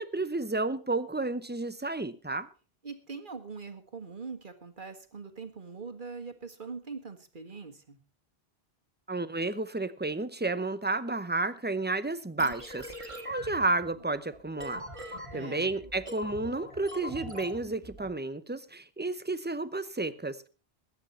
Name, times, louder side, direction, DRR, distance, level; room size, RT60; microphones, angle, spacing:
voice 1, 0.0-2.5 9.1-14.8 15.3-20.5, right 2 dB, 10° right, 0.7 m, -31 dB
voice 2, 2.8-8.0 15.3-15.7, right 4 dB, 50° right, 2.0 m, -42 dB
sound 1, 12.4-18.1, equal, 30° right, 2.1 m, -43 dB
20.5 x 9.4 x 4.3 m
omnidirectional pair, 1.1 m